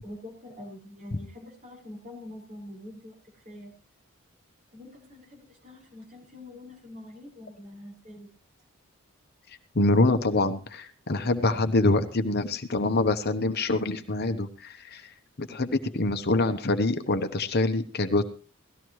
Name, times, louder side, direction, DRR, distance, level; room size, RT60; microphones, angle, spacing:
voice 1, 0.0-3.7 4.7-8.3, left 1 dB, 40° right, -1 dB, 5.7 m, -45 dB
voice 2, 9.5-18.2, left 2 dB, 50° left, 8 dB, 1.0 m, -25 dB
18.0 x 14.0 x 3.1 m, 0.35 s
head